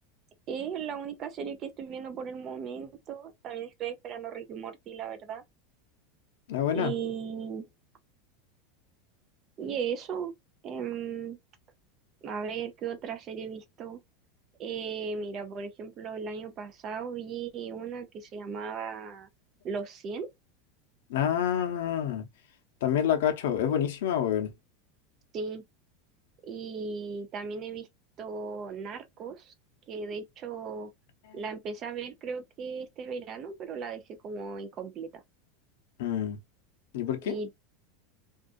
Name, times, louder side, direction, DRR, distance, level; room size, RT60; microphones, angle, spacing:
voice 1, 0.5-5.4 6.7-7.7 9.6-10.3 10.6-11.4 12.2-14.0 14.6-19.3 19.6-20.3 25.3-25.6 26.4-27.9 28.2-29.5 29.9-30.9 31.3-35.1 37.2-37.5, right 6 dB, 30° right, 0.5 m, -36 dB
voice 2, 6.5-6.9 21.1-22.3 22.8-24.5 36.0-36.4 36.9-37.4, left 9 dB, 80° left, 0.6 m, -27 dB
2.5 x 2.3 x 2.4 m
supercardioid pair, 165°, 0 cm